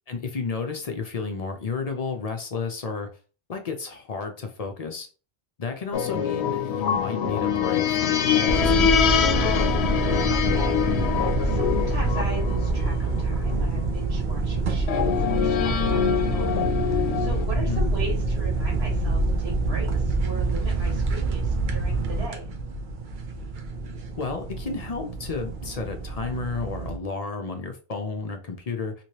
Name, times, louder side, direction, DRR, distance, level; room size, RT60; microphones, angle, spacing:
voice 1, 0.1-3.1 3.5-5.1 5.6-9.3 17.6-17.9 24.2-28.9, left 4 dB, 45° left, 5 dB, 0.6 m, -32 dB
sound 1, 5.9-13.8 14.9-17.4, left 8 dB, 90° left, 0.8 m, -24 dB
sound 2, 8.5-27.0, right 3 dB, 55° right, 0.8 m, -26 dB
voice 2, 9.8-22.5, right 1 dB, 80° right, -2 dB, 1.6 m, -38 dB
3.1 x 2.9 x 2.8 m, 0.36 s
omnidirectional pair, 1.1 m